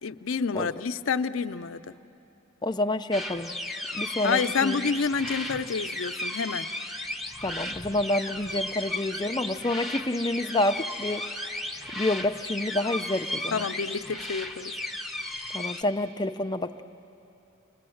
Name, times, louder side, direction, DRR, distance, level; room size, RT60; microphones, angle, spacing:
voice 1, 0.0-1.9 4.2-6.7 13.5-14.7, left 5 dB, 75° left, 10 dB, 0.6 m, -28 dB
voice 2, 2.6-3.6 3.9-4.9 7.4-11.2 11.9-13.7 15.5-16.8, left 1 dB, 20° left, 7 dB, 0.6 m, -28 dB
sound 1, 3.1-15.8, left 1 dB, ahead, 1.1 m, -35 dB
30.0 x 21.0 x 7.9 m, 2.9 s
head